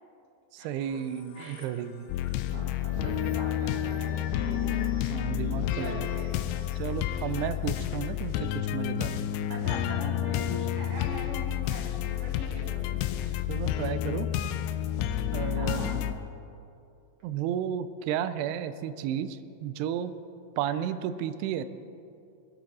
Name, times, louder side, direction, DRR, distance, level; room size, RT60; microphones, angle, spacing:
voice 1, 0.5-2.1 5.1-6.1 6.8-9.2 13.5-14.3 15.3-15.9 17.2-20.1 20.6-21.7, right 9 dB, 80° right, 11 dB, 2.6 m, -33 dB
sound 1, 0.8-9.4, left 5 dB, 70° left, 2.2 m, -50 dB
sound 2, 2.1-16.1, left 11 dB, 85° left, 2.7 m, -30 dB
voice 2, 2.5-4.9 5.7-6.4 7.3-7.5 9.5-13.4 15.5-16.1, right 1 dB, 45° right, -2 dB, 2.1 m, -41 dB
22.0 x 10.5 x 4.2 m, 2.5 s
omnidirectional pair, 4.9 m